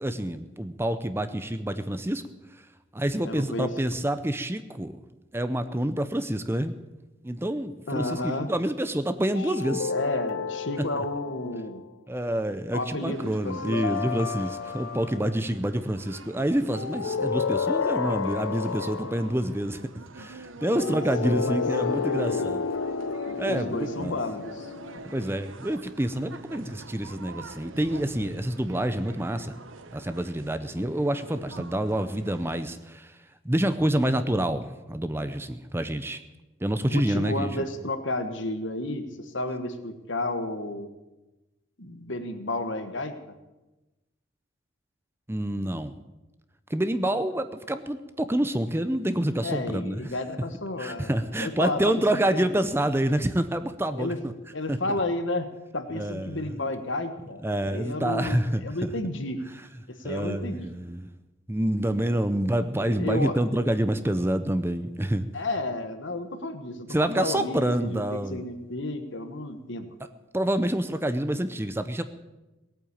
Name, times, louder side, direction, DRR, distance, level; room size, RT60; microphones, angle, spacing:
voice 1, 0.0-2.2 2.5-2.7 2.9-5.0 5.3-6.7 7.2-9.9 11.0-11.1 12.1-19.8 20.1-22.7 23.4-24.2 25.0-29.6 29.9-33.2 33.4-36.2 36.6-37.6 45.3-46.0 46.7-50.1 50.8-54.1 54.7-54.8 55.9-56.6 57.4-58.9 60.0-61.1 61.5-65.3 66.9-68.4 70.3-72.0, right 1 dB, 10° right, 10 dB, 0.6 m, -27 dB
voice 2, 3.2-3.7 7.9-8.5 9.8-11.8 12.7-13.8 20.7-21.6 21.8-22.5 23.5-24.7 36.9-40.9 41.8-43.1 49.4-51.1 51.4-51.8 52.3-52.5 53.9-54.2 54.5-55.5 55.7-57.4 57.7-59.4 59.9-60.7 62.8-63.4 65.3-68.0 68.3-69.9, left 2 dB, 65° left, 8 dB, 1.4 m, -32 dB
sound 1, 9.4-11.8 13.5-15.3 16.7-19.5 20.8-25.3, left 5 dB, 90° left, 0.6 m, -31 dB
sound 2, 13.1-32.6, right 3 dB, 75° right, 1.1 m, -45 dB
18.5 x 8.9 x 8.6 m, 1.0 s
head